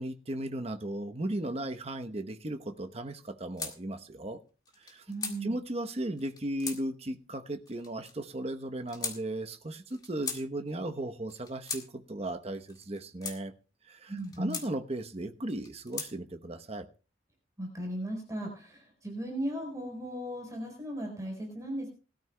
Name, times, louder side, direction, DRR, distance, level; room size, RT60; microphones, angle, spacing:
voice 1, 0.0-4.4 4.8-5.0 5.4-13.5 13.9-16.9, right 1 dB, 35° right, 7 dB, 0.9 m, -36 dB
sound 1, 3.6-3.8 4.7-5.4 6.2-6.8 7.7-8.1 8.9-9.2 9.9-10.4 11.3-11.9 12.7-13.4 14.2-14.7 15.5-16.1, left 4 dB, 20° left, 1.9 m, -38 dB
voice 2, 5.1-5.6 14.1-14.6 17.6-21.9, right 1 dB, 20° right, 0 dB, 4.4 m, -37 dB
20.5 x 13.0 x 2.2 m, 0.34 s
head